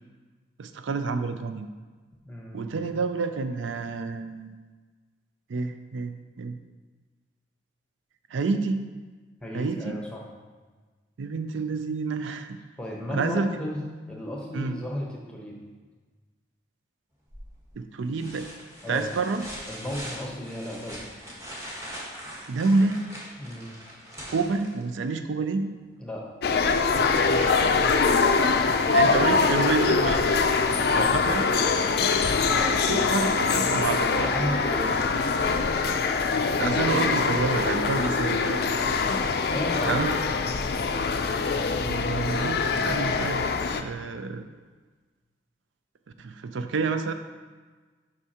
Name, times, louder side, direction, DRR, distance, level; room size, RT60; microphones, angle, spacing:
voice 1, 0.6-1.7 2.5-4.6 5.5-6.5 8.3-8.8 9.5-10.0 11.2-12.6 13.1-13.5 14.5-14.8 17.7-18.5 18.9-19.4 22.5-23.0 24.3-25.7 27.3-28.2 28.9-30.4 30.9-31.5 32.9-34.3 36.6-38.6 39.8-40.2 41.8-44.5 46.2-47.1, right 4 dB, 85° right, 8 dB, 0.4 m, -28 dB
voice 2, 2.2-3.0 9.4-10.2 12.8-13.8 14.1-15.5 18.8-19.2 19.7-21.1 23.4-23.7 26.0-26.2 30.8-31.1 32.5-32.7 34.2-35.1 35.6-35.9 39.4-40.2, equal, 5° left, -2 dB, 0.9 m, -34 dB
sound 1, 17.3-17.7 18.2-25.1 26.9-27.0, equal, 15° right, 1.3 m, -41 dB
sound 2, 26.4-43.8, left 4 dB, 55° left, 0.4 m, -23 dB
8.1 x 5.4 x 2.9 m, 1.4 s
head